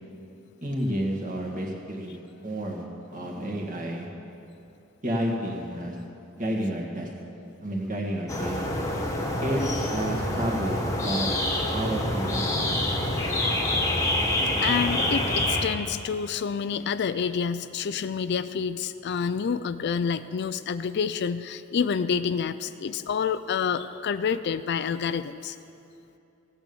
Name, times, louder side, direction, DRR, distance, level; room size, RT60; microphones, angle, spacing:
voice 1, 0.6-2.2 2.4-2.8 3.1-4.1 5.0-6.0 6.4-7.1 7.6-8.6 9.4-11.3 11.7-12.8, right 1 dB, 35° right, 0 dB, 1.9 m, -30 dB
sound 1, 8.3-15.6, left 1 dB, 15° left, 1.4 m, -26 dB
voice 2, 14.3-25.6, left 6 dB, 50° left, 13 dB, 0.4 m, -28 dB
16.0 x 8.9 x 7.0 m, 2.7 s
head